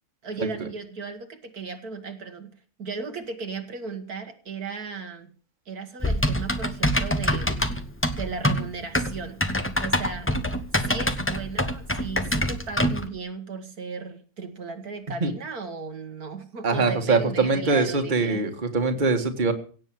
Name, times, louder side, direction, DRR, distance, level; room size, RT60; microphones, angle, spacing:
voice 1, 0.2-2.5 2.8-5.3 5.7-7.7 8.1-9.4 9.8-10.3 10.7-18.5, right 4 dB, 70° right, 6 dB, 2.1 m, -36 dB
Typing, 6.0-13.1, equal, 10° left, 1.0 m, -25 dB
voice 2, 16.6-19.5, right 4 dB, 30° right, 5 dB, 1.9 m, -23 dB
17.5 x 7.7 x 7.6 m, 0.40 s
omnidirectional pair, 1.7 m